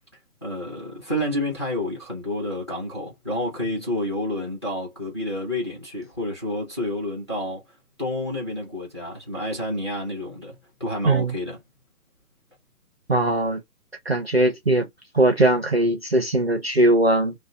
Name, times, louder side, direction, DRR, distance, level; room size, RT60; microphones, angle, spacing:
voice 1, 0.4-7.6 8.0-11.6, left 1 dB, 20° left, 0.8 m, -29 dB
voice 2, 13.1-13.6 14.1-14.9 15.1-17.3, right 1 dB, 45° right, 0.5 m, -20 dB
2.5 x 2.1 x 2.4 m
hypercardioid pair, 175°, 45 cm